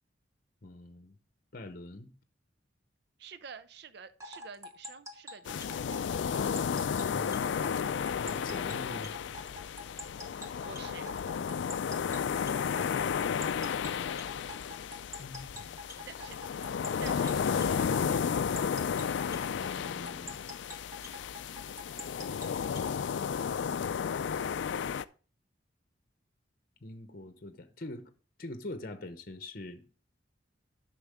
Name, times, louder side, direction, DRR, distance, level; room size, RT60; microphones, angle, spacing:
voice 1, 0.6-1.2 1.5-2.1 6.9-7.6 8.2-9.2 15.2-16.1 19.5-20.4 26.8-28.1 28.4-30.0, left 2 dB, 50° left, 0.8 m, -44 dB
voice 2, 3.2-5.8 10.6-11.1 16.1-16.4 17.0-18.2, right 6 dB, 55° right, 0.5 m, -49 dB
sound 1, 4.2-22.9, left 1 dB, 15° right, 1.1 m, -45 dB
sound 2, 5.5-25.0, left 7 dB, 65° left, 0.3 m, -33 dB
10.0 x 6.1 x 3.5 m
head